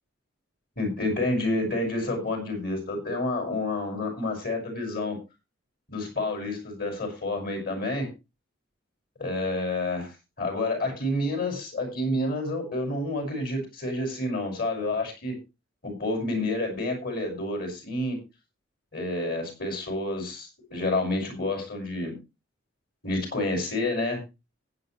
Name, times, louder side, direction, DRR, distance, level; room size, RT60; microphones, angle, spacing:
voice 1, 0.8-5.2 5.9-8.1 9.2-15.4 15.8-18.2 18.9-22.2 23.0-24.2, left 2 dB, 50° left, 2 dB, 6.0 m, -29 dB
15.0 x 10.5 x 3.3 m, 0.27 s
head